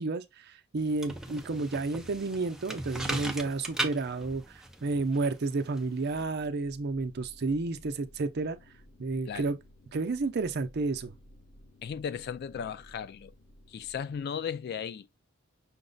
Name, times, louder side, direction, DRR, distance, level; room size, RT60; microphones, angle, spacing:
voice 1, 0.0-4.4 4.8-8.6 9.0-9.6 9.9-11.1, right 3 dB, 50° right, 0.5 m, -31 dB
sound 1, 0.8-6.2, right 1 dB, 5° right, 0.5 m, -38 dB
sound 2, 6.0-14.2, left 1 dB, 70° left, 0.9 m, -56 dB
voice 2, 11.8-13.3 13.7-15.1, left 7 dB, 50° left, 0.3 m, -36 dB
5.8 x 2.1 x 3.9 m
head